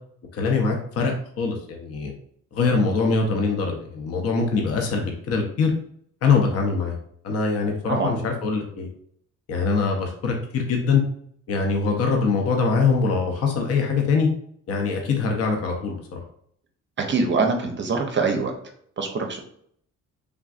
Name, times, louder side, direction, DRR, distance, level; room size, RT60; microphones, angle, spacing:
voice 1, 0.3-2.1 2.5-5.7 6.2-7.0 7.2-8.9 9.5-11.0 11.5-14.3 14.7-16.2, left 4 dB, 50° left, 2 dB, 0.6 m, -23 dB
voice 2, 17.1-18.5 19.0-19.4, right 4 dB, 40° right, 3 dB, 0.5 m, -23 dB
3.4 x 2.5 x 2.4 m, 0.65 s
cardioid pair, 90°, 30 cm